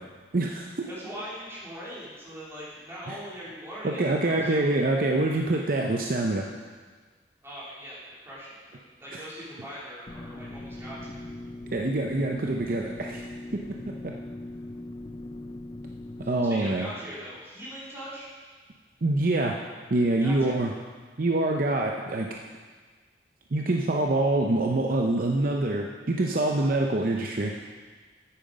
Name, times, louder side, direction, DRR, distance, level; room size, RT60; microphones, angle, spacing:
voice 1, 0.3-0.9 3.1-3.2 3.8-6.5 9.1-9.2 11.7-13.2 13.5-13.6 13.9-14.1 16.3-16.9 19.0-19.6 19.9-20.7 21.2-22.3 23.5-27.5, right 2 dB, 50° right, 1 dB, 0.7 m, -25 dB
voice 2, 0.9-4.7 7.4-11.3 16.2-18.3 20.2-20.6, equal, 15° right, -9 dB, 3.4 m, -41 dB
sound 1, 10.1-16.5, left 1 dB, 25° left, 0.4 m, -40 dB
9.0 x 8.9 x 5.2 m, 1.5 s
head